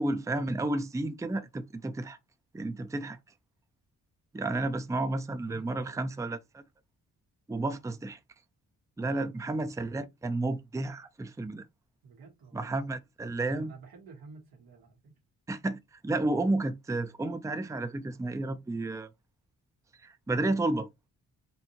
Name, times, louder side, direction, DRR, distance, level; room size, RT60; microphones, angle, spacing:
voice 1, 0.0-2.2 2.5-3.2 4.3-6.6 7.5-8.2 9.0-11.7 12.5-13.7 15.5-19.1 20.0-20.9, right 2 dB, 10° right, 0.5 m, -31 dB
voice 2, 5.5-6.2 9.0-9.4 12.0-12.7 13.6-15.1, right 4 dB, 85° right, 1.3 m, -52 dB
4.3 x 2.7 x 2.9 m
supercardioid pair, 55°, 35 cm